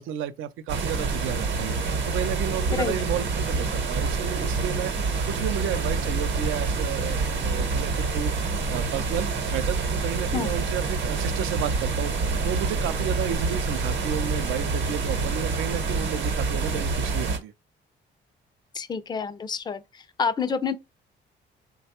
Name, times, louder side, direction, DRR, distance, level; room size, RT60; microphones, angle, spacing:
voice 1, 0.0-1.8 2.0-17.5, right 10 dB, 85° right, 0.4 m, -32 dB
sound 1, 0.7-17.4, right 4 dB, 65° right, 0.8 m, -27 dB
voice 2, 18.7-19.8 20.2-20.8, left 6 dB, 20° left, 0.4 m, -27 dB
3.1 x 2.2 x 2.8 m
cardioid pair, 90°, 20 cm